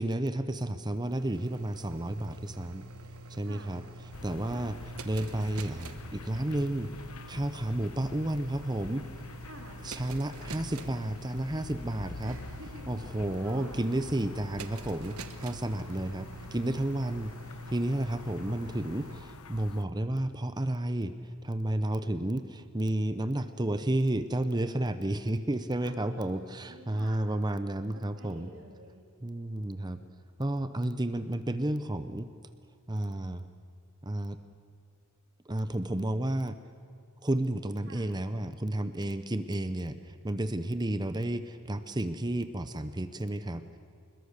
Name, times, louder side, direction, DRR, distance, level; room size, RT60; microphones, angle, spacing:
voice 1, 0.0-2.9 3.3-3.8 4.2-4.8 5.1-6.9 7.3-9.1 9.8-12.4 12.9-17.3 17.7-28.5 29.2-30.0 30.4-32.3 32.9-33.5 34.0-34.4 35.5-36.6 37.2-43.8, right 1 dB, 20° right, 11 dB, 0.8 m, -31 dB
sound 1, 0.7-19.2, right 2 dB, 80° right, 1.4 m, -47 dB
voice 2, 3.4-3.8 4.5-4.9 9.4-9.9 10.6-11.1 12.2-13.8 15.7-16.3 25.8-27.3 27.9-29.0 37.9-38.1, right 1 dB, 60° right, 2 dB, 3.6 m, -51 dB
sound 2, 4.1-19.8, left 3 dB, 80° left, 0.9 m, -46 dB
26.5 x 21.5 x 6.7 m, 2.3 s
head